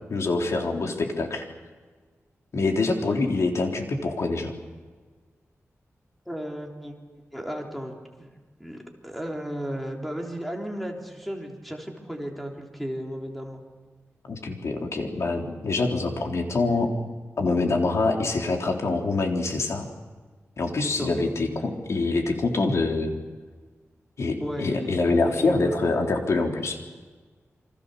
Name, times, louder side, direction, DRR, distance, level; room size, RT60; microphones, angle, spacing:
voice 1, 0.1-1.4 2.5-4.5 14.2-16.9 17.4-19.9 20.6-23.1 24.2-26.8, left 3 dB, 70° left, 2 dB, 3.7 m, -25 dB
voice 2, 6.3-6.9 7.3-8.3 8.6-13.6 20.8-21.1 24.4-25.7 26.3-26.4, equal, ahead, 1 dB, 3.6 m, -34 dB
28.5 x 25.5 x 6.9 m, 1.4 s
wide cardioid pair, 155°, 5 cm